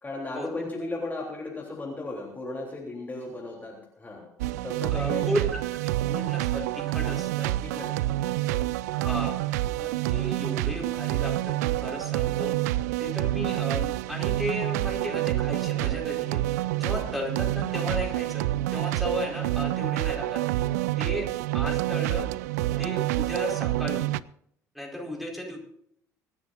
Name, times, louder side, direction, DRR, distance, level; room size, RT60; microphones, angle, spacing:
voice 1, 0.0-4.3 4.6-5.5 7.6-8.7, left 2 dB, 20° left, -1 dB, 3.5 m, -36 dB
sound 1, 4.4-24.2, right 16 dB, 65° right, 0.4 m, -28 dB
voice 2, 4.9-5.6 6.1-7.5 8.9-9.4 9.8-12.6 13.0-20.4 20.7-22.3 22.8-24.1 24.7-25.6, equal, ahead, 0 dB, 4.7 m, -34 dB
25.5 x 12.0 x 2.6 m, 0.68 s
figure-of-eight pair, 55°, 9 cm